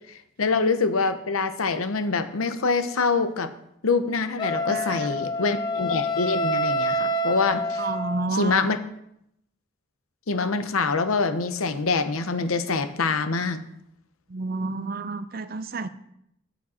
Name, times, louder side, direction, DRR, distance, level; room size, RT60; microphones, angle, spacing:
voice 1, 0.4-3.5 3.8-7.8 8.4-8.8 10.3-13.6, left 4 dB, 90° left, 10 dB, 0.8 m, -25 dB
Wind instrument woodwind instrument, 4.4-8.4, equal, 20° left, 0.7 m, -27 dB
voice 2, 4.6-5.2 7.8-8.7 14.3-15.9, right 3 dB, 45° right, 12 dB, 0.5 m, -30 dB
8.8 x 8.7 x 4.3 m, 0.77 s
head